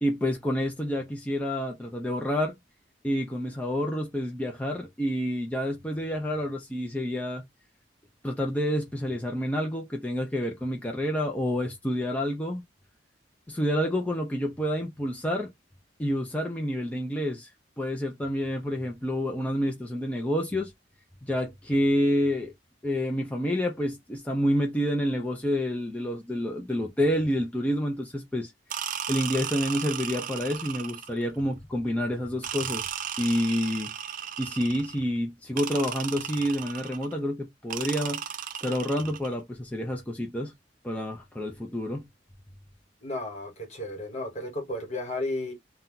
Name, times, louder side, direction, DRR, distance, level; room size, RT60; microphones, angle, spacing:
voice 1, 0.0-2.5 3.0-7.4 8.2-12.6 13.5-15.5 16.0-17.5 17.8-20.7 21.2-22.5 22.8-28.5 29.1-32.9 33.2-33.9 34.4-38.2 38.6-40.5 40.8-42.1, equal, 10° left, 0.5 m, -28 dB
sound 1, 28.7-31.3 32.4-35.0 35.6-37.1 37.7-39.3, right 9 dB, 50° right, 0.4 m, -35 dB
voice 2, 43.0-45.5, left 1 dB, 40° left, 1.3 m, -33 dB
2.6 x 2.2 x 3.8 m
head